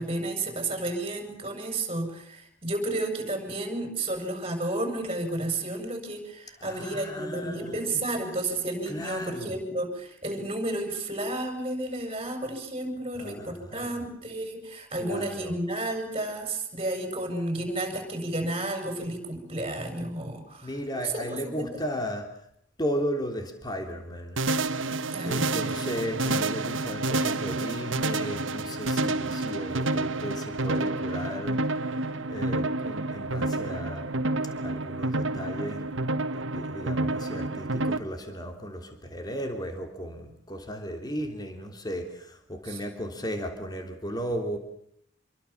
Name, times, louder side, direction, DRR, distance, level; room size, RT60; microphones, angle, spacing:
voice 1, 0.0-21.7 25.1-25.6 42.7-42.8, right 2 dB, 30° right, 5 dB, 7.2 m, -32 dB
voice 2, 6.6-8.0 8.8-9.5 13.1-14.0 15.0-15.6 20.6-22.4 22.8-24.4 25.2-34.1 34.6-44.6, equal, 20° left, 5 dB, 3.3 m, -35 dB
sound 1, 24.4-38.0, right 2 dB, 80° right, 1.6 m, -29 dB
28.0 x 23.0 x 7.3 m, 0.71 s
head